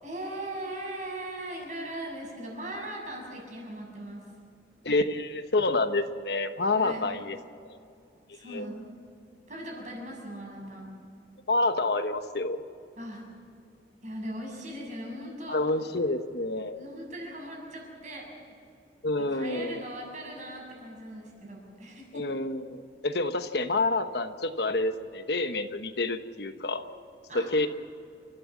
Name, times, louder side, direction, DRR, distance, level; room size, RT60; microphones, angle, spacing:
voice 1, 0.0-4.3 6.8-7.1 8.3-8.9 9.5-11.0 13.0-13.3 14.0-15.6 16.7-18.3 19.2-22.2 27.3-27.5, right 1 dB, 40° right, -1 dB, 7.3 m, -39 dB
voice 2, 4.8-7.4 7.7-7.8 8.5-8.7 11.5-12.6 15.5-16.7 19.0-19.8 22.1-26.8 27.3-27.7, left 2 dB, 65° left, 8 dB, 1.1 m, -28 dB
29.5 x 13.5 x 7.4 m, 2.5 s
head